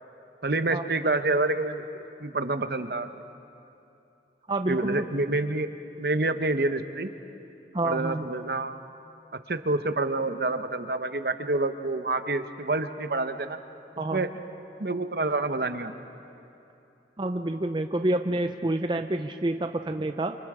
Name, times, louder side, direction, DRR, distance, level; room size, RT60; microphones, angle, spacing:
voice 1, 0.4-3.1 4.7-5.7 6.0-7.1 7.8-8.8 9.5-13.6 14.1-14.3 14.8-15.9, right 2 dB, 60° right, 9 dB, 0.9 m, -27 dB
voice 2, 4.5-5.0 7.7-8.3 14.0-14.3 17.2-20.3, right 1 dB, 25° right, 6 dB, 0.6 m, -28 dB
29.5 x 25.5 x 4.9 m, 2.8 s
head